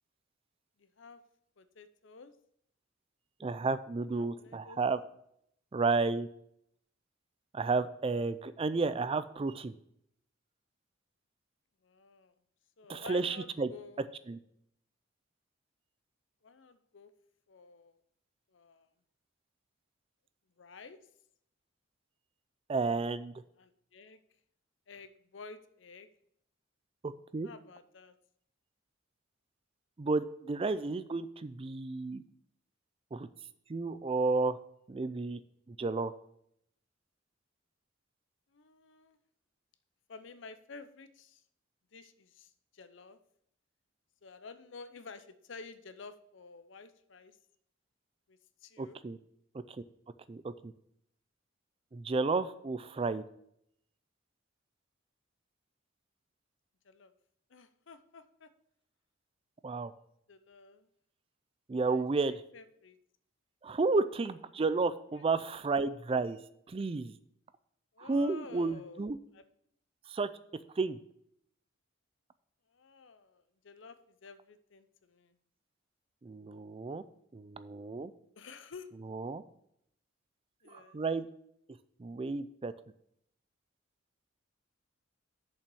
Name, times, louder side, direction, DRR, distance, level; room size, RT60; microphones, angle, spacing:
voice 1, 0.8-1.2 1.6-2.4 4.1-4.8 11.8-12.3 12.8-14.1 16.4-17.1 17.5-18.0 18.5-18.9 20.6-21.0 23.6-24.2 24.9-26.1 27.4-28.2 38.5-39.2 40.1-41.4 41.9-43.2 44.2-47.4 48.3-49.0 56.8-57.1 57.5-58.5 60.3-60.9 61.9-63.0 65.1-65.2 67.9-69.0 69.3-69.4 72.7-74.0 74.2-75.4 78.4-78.9 80.6-81.0, left 4 dB, 70° left, 12 dB, 0.6 m, -51 dB
voice 2, 3.4-5.0 5.7-6.3 7.5-9.7 12.9-13.7 14.3-14.4 22.7-23.3 27.0-27.5 30.0-32.2 33.1-33.3 33.7-34.6 34.9-35.4 35.7-36.1 48.8-49.2 49.7-49.8 50.3-50.7 51.9-53.2 59.6-59.9 61.7-62.4 63.6-66.4 66.7-67.1 68.0-69.2 70.1-71.0 76.2-77.0 77.3-78.1 79.0-79.4 80.7-81.3 82.0-82.7, right 3 dB, 30° right, 14 dB, 0.4 m, -32 dB
7.0 x 5.4 x 6.9 m, 0.72 s
head